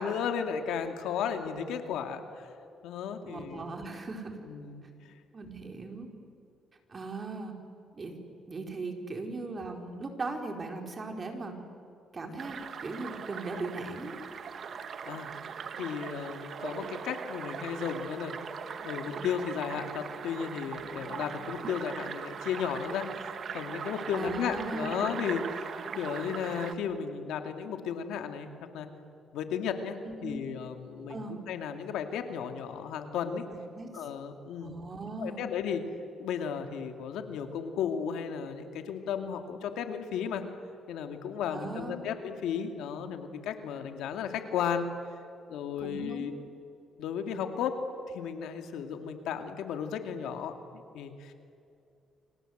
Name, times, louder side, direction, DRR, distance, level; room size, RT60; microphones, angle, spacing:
voice 1, 0.0-2.5 2.8-3.7 4.5-5.1 15.1-15.3 15.8-18.3 18.8-28.9 29.3-33.4 33.9-34.8 35.2-35.8 36.2-40.4 40.9-44.9 45.5-46.3 47.0-47.8 48.1-51.3, left 7 dB, 85° left, 6 dB, 2.4 m, -34 dB
voice 2, 3.2-4.4 5.3-6.1 6.9-7.5 7.9-8.2 8.5-11.6 12.1-14.2 24.1-25.0 30.0-30.4 31.1-31.4 33.5-34.1 34.6-35.4 41.5-42.1 45.8-46.3, right 3 dB, 35° right, 3 dB, 4.5 m, -38 dB
sound 1, 12.4-26.7, right 6 dB, 55° right, 1.6 m, -40 dB
29.0 x 25.5 x 8.0 m, 2.5 s
cardioid pair, 90°, 0 cm